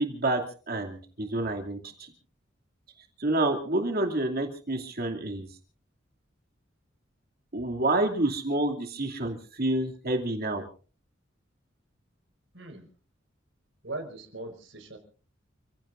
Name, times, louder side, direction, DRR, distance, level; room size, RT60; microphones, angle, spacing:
voice 1, 0.0-2.1 3.2-5.5 7.5-10.6, right 2 dB, 55° right, 3 dB, 2.6 m, -28 dB
voice 2, 12.5-12.9 13.8-15.0, right 2 dB, 70° right, 5 dB, 4.9 m, -39 dB
30.0 x 16.5 x 2.6 m, 0.39 s
head